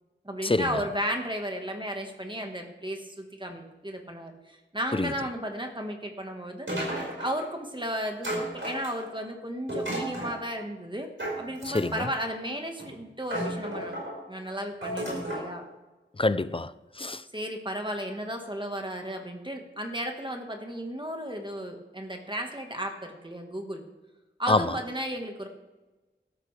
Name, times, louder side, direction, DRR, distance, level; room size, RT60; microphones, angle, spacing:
voice 1, 0.2-6.7 7.2-11.1 11.4-14.0 14.3-15.6 17.3-23.8 24.4-25.5, equal, 25° right, 1.5 m, -34 dB
sound 1, 6.7-7.5 8.2-9.2 9.7-10.3 11.2-12.1 12.8-12.9 13.2-14.1 14.8-15.5, right 1 dB, 85° right, 5.1 m, -33 dB
voice 2, 11.7-12.1 16.2-17.2 24.5-24.7, left 2 dB, 30° left, 0.5 m, -26 dB
13.5 x 13.0 x 3.3 m
wide cardioid pair, 45°, 19 cm